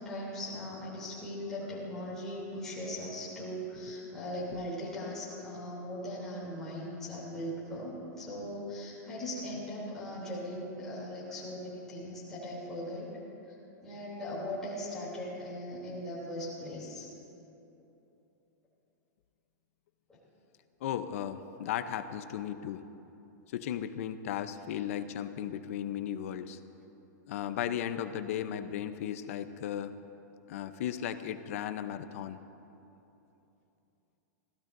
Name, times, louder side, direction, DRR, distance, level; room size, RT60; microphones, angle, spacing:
voice 1, 0.0-13.1 13.8-17.1, left 1 dB, 5° left, -9 dB, 3.0 m, -39 dB
voice 2, 20.8-22.9 23.5-26.6 27.3-29.9 30.5-32.4, left 10 dB, 50° left, 10 dB, 0.7 m, -36 dB
28.5 x 15.5 x 2.7 m, 2.9 s
supercardioid pair, 175°, 10 cm